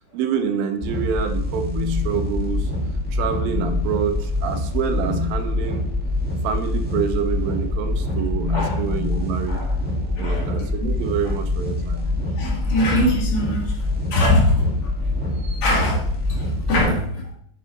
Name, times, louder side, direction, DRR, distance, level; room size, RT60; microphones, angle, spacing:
voice 1, 0.1-2.7 3.1-5.8 6.4-9.6 10.0-12.0, right 8 dB, 80° right, 8 dB, 2.5 m, -27 dB
sound 1, 0.8-16.8, left 2 dB, 5° right, 0.7 m, -25 dB
sound 2, 1.3-2.7 3.3-4.1 4.9-5.3 6.8-7.1 8.3-9.3 10.8-12.6 13.7-14.2 15.4-15.7, left 7 dB, 35° right, 2.4 m, -33 dB
voice 2, 8.5-8.8 9.1-9.7 10.2-10.9 11.9-12.0 12.4-14.9 15.6-17.3, left 1 dB, 55° left, -1 dB, 2.6 m, -23 dB
9.1 x 5.5 x 4.1 m, 0.65 s
omnidirectional pair, 4.2 m